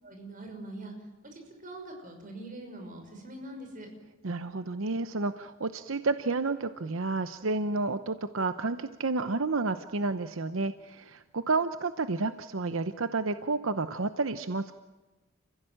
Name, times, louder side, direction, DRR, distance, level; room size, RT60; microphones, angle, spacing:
voice 1, 0.0-0.9 1.2-3.9, right 1 dB, 40° right, 4 dB, 5.8 m, -43 dB
voice 2, 4.2-14.7, right 3 dB, 80° right, 10 dB, 0.8 m, -30 dB
30.0 x 16.0 x 8.9 m, 1.2 s
head